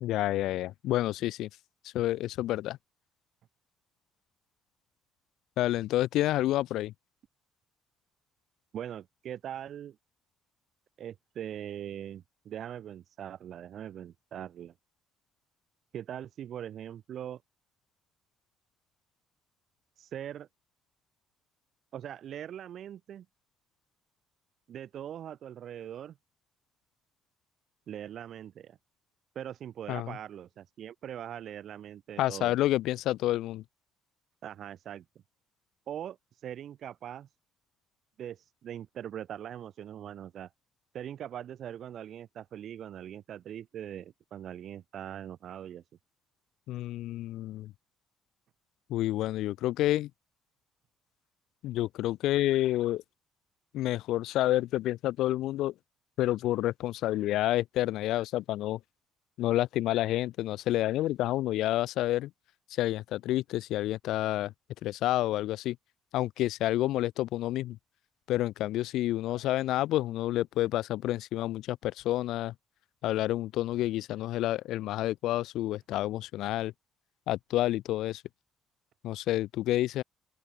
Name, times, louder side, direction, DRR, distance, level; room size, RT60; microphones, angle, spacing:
voice 1, 0.0-1.5 1.8-2.8 5.6-6.9 29.9-30.1 32.2-33.6 46.7-47.7 48.9-50.1 51.6-53.0 53.7-55.7 56.2-58.8 59.4-62.3 62.7-64.5 64.8-65.8 66.1-67.8 68.3-72.5 73.0-76.7 77.3-78.2 79.0-80.0, left 15 dB, 75° left, 0.6 m, -29 dB
voice 2, 8.7-10.0 11.0-14.7 15.9-17.4 20.0-20.5 21.9-23.3 24.7-26.2 27.9-28.8 29.4-32.5 34.4-35.0 35.9-37.3 38.2-40.5 40.9-45.8, right 10 dB, 45° right, 5.5 m, -41 dB
open air
cardioid pair, 175°, 0 cm